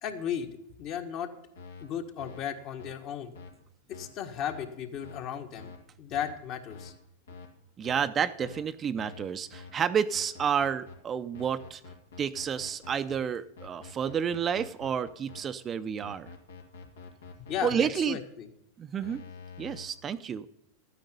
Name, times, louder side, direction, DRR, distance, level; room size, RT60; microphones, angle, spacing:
voice 1, 0.0-0.5 0.8-1.3 1.8-3.3 3.9-5.7 6.0-6.9 17.4-18.5, left 9 dB, 45° left, 6 dB, 1.6 m, -35 dB
sound 1, 1.5-1.9 2.2-2.4 2.8-2.9 3.3-3.5 3.9-4.1 4.5-4.6 5.0-5.2 5.6-5.8 6.1-6.3 6.7-6.9 7.3-7.5 7.8-8.1 8.4-8.6 9.0-9.2 9.5-9.7 10.1-10.9 11.3-13.2 13.6-15.4 16.0-17.8 19.0-19.9, left 4 dB, 80° left, 2.1 m, -46 dB
voice 2, 7.8-11.8 12.2-16.3 17.6-18.2 18.8-19.2 19.6-20.5, right 7 dB, 30° right, 12 dB, 0.6 m, -30 dB
12.5 x 9.2 x 5.3 m, 0.78 s
hypercardioid pair, 105°, 0 cm